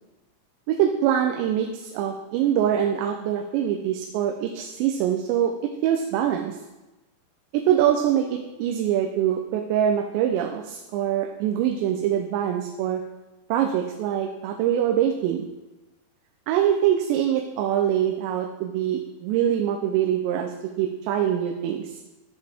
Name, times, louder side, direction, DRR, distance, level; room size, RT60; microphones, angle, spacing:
voice 1, 0.7-6.6 7.5-13.0 13.5-15.5 16.5-22.0, right 10 dB, 90° right, 2 dB, 2.9 m, -24 dB
10.5 x 7.0 x 3.4 m, 1.1 s
omnidirectional pair, 5.0 m